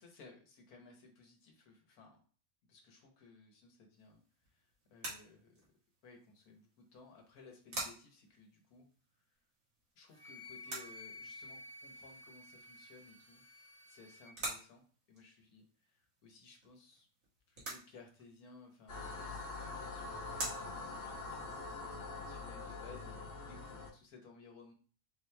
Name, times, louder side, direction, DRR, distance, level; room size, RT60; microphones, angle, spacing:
voice 1, 0.0-2.2 2.7-5.6 6.0-8.9 9.2-9.3 9.9-13.4 13.9-17.1 17.5-24.7, left 4 dB, 80° left, 2 dB, 1.6 m, -59 dB
sound 1, 3.9-22.2, right 2 dB, 65° right, 1.8 m, -50 dB
Wind instrument woodwind instrument, 10.1-14.3, left 2 dB, 30° right, 1.4 m, -53 dB
sound 2, 18.9-23.9, left 3 dB, 60° left, 1.5 m, -44 dB
4.3 x 3.0 x 3.3 m, 0.41 s
omnidirectional pair, 1.6 m